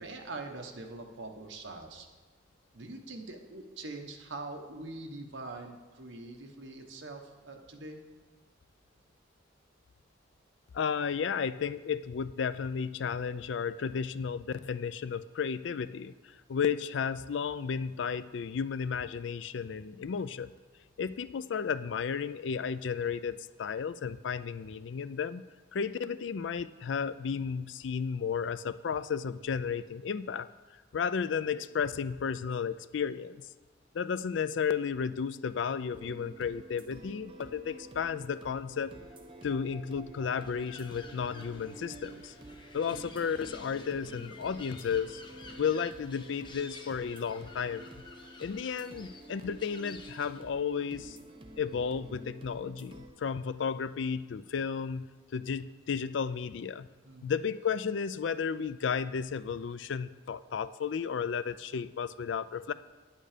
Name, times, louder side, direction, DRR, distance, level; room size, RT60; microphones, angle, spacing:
voice 1, 0.0-2.1 2.7-8.0 57.0-57.3, right 2 dB, 70° right, 3 dB, 1.2 m, -43 dB
voice 2, 10.7-20.5 21.0-25.4 25.7-30.5 30.9-33.4 33.9-38.9 39.4-42.3 42.7-45.2 45.6-47.9 48.4-51.2 51.6-55.1 55.3-56.9 57.2-62.7, left 6 dB, 65° left, 15 dB, 0.4 m, -33 dB
sound 1, 35.9-53.1, right 1 dB, 25° right, 0.8 m, -50 dB
sound 2, 36.1-45.9, equal, 5° right, 1.0 m, -59 dB
sound 3, 40.3-50.4, left 3 dB, 25° left, 1.0 m, -52 dB
10.0 x 8.7 x 5.0 m, 1.3 s
head